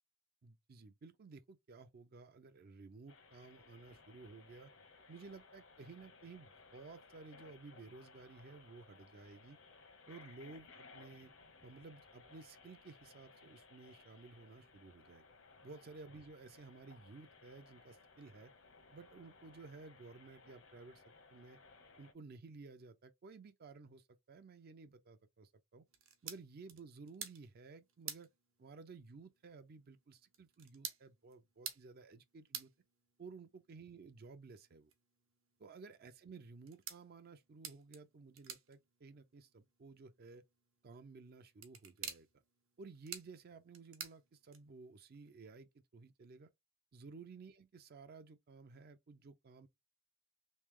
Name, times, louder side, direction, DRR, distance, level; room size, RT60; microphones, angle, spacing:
voice 1, 0.4-4.7 5.1-9.6 10.1-11.3 11.6-15.3 15.6-18.5 18.9-21.0 21.3-21.6 22.0-25.8 26.2-28.3 28.6-32.7 33.2-34.9 35.6-40.4 40.8-42.3 42.8-46.5 46.9-49.7, right 4 dB, 50° right, 0.4 m, -55 dB
sound 1, 3.1-22.1, left 4 dB, 70° left, 1.0 m, -61 dB
sound 2, 25.9-44.9, right 8 dB, 70° right, 0.9 m, -53 dB
3.2 x 3.2 x 3.6 m
head